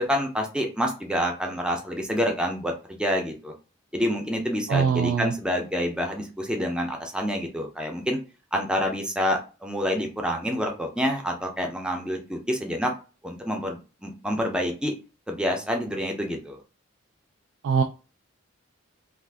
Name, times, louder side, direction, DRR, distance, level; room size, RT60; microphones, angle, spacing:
voice 1, 0.1-3.5 3.9-8.2 8.5-12.9 13.2-14.9 15.3-16.6, equal, 5° right, 2 dB, 0.5 m, -27 dB
voice 2, 4.7-5.3 17.6-17.8, right 6 dB, 75° right, 6 dB, 0.3 m, -22 dB
2.5 x 2.4 x 3.5 m, 0.33 s
head